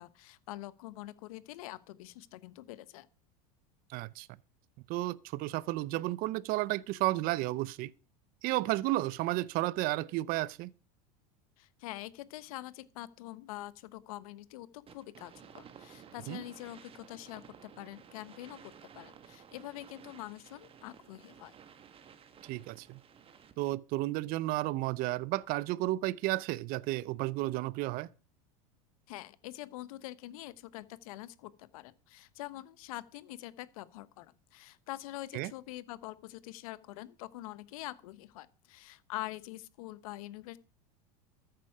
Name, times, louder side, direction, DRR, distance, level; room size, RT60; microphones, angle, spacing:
voice 1, 0.0-3.1 11.6-21.5 29.1-40.6, left 16 dB, 75° left, 1.2 m, -45 dB
voice 2, 3.9-4.3 4.9-7.9 8.4-10.7 16.3-16.4 22.4-23.0 23.6-28.1 35.3-35.5, right 18 dB, 50° right, 0.7 m, -32 dB
sound 1, 14.9-23.8, right 8 dB, 30° right, 1.5 m, -55 dB
13.5 x 9.4 x 4.9 m
supercardioid pair, 110°, 18 cm